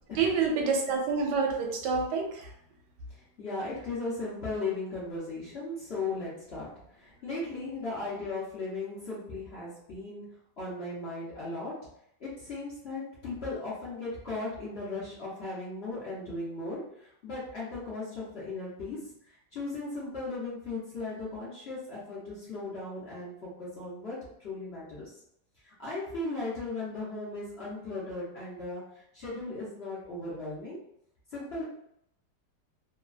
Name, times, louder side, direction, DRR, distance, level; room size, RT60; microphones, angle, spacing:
voice 1, 0.2-2.5, right 5 dB, 80° right, 1 dB, 1.2 m, -27 dB
voice 2, 3.1-11.9 12.2-25.1 25.6-30.8 31.3-31.6, left 2 dB, 50° left, -8 dB, 0.8 m, -37 dB
3.0 x 2.2 x 2.4 m, 0.74 s
omnidirectional pair, 1.9 m